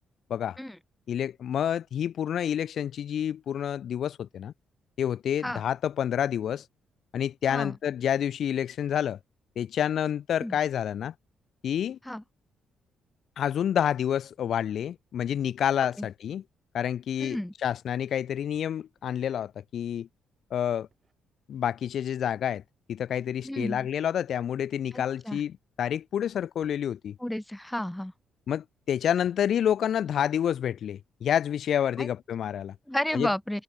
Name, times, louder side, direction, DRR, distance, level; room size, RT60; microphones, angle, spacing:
voice 1, 1.1-4.5 5.0-6.6 7.1-9.2 9.6-11.1 11.6-12.0 13.4-16.4 16.7-20.1 20.5-20.9 21.5-22.6 22.9-27.1 28.5-32.7 33.1-33.3, left 9 dB, 65° left, 0.4 m, -28 dB
sound 1, 15.4-15.7 17.0-17.6 18.5-19.0 20.6-21.2 22.4-22.9 24.3-25.0 26.6-26.9 28.0-28.3 29.2-29.6, right 5 dB, 35° right, 4.0 m, -66 dB
voice 2, 17.2-17.5 23.4-23.9 24.9-25.4 27.2-28.1 32.0-32.1 32.9-33.6, left 1 dB, 5° left, 0.7 m, -32 dB
cardioid pair, 90°, 0 cm